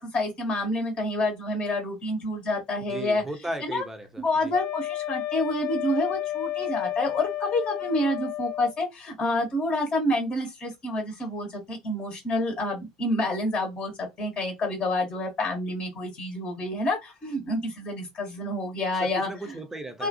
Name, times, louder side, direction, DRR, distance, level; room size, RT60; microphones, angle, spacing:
voice 1, 0.0-3.2 3.6-3.8 4.2-19.6 20.0-20.1, left 1 dB, 30° left, 1.1 m, -28 dB
voice 2, 2.9-4.5 19.0-20.1, right 1 dB, 10° right, 0.9 m, -36 dB
Wind instrument woodwind instrument, 4.5-8.8, left 14 dB, 50° left, 0.5 m, -31 dB
2.7 x 2.4 x 2.6 m
figure-of-eight pair, 70°, 3 cm